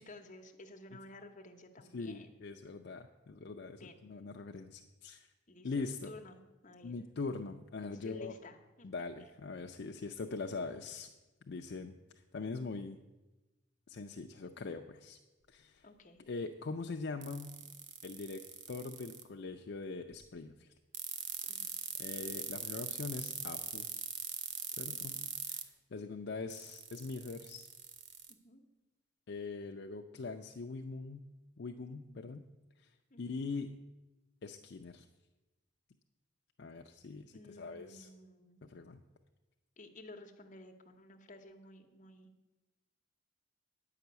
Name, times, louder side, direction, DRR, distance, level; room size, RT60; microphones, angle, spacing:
voice 1, 0.0-2.4 3.8-4.0 5.5-6.9 8.0-8.9 15.8-16.2 21.5-21.8 24.9-25.2 28.3-28.6 33.1-33.4 37.3-38.6 39.8-42.3, left 2 dB, 40° left, 3 dB, 1.0 m, -53 dB
voice 2, 1.9-5.3 5.6-6.1 6.8-8.3 8.8-11.1 11.5-12.0 12.3-13.0 13.9-15.2 15.5-15.9 16.3-17.5 18.0-18.4 18.7-20.7 22.0-23.9 24.8-25.2 25.5-25.6 25.9-27.7 29.3-31.3 31.6-32.4 32.8-32.9 33.2-33.7 34.4-35.1 36.6-38.1 38.6-39.0, left 4 dB, 60° left, 4 dB, 0.5 m, -42 dB
sound 1, 17.2-19.2 20.9-25.6 26.5-28.3, right 8 dB, 65° right, 0.9 m, -41 dB
9.4 x 5.8 x 8.0 m, 1.1 s
head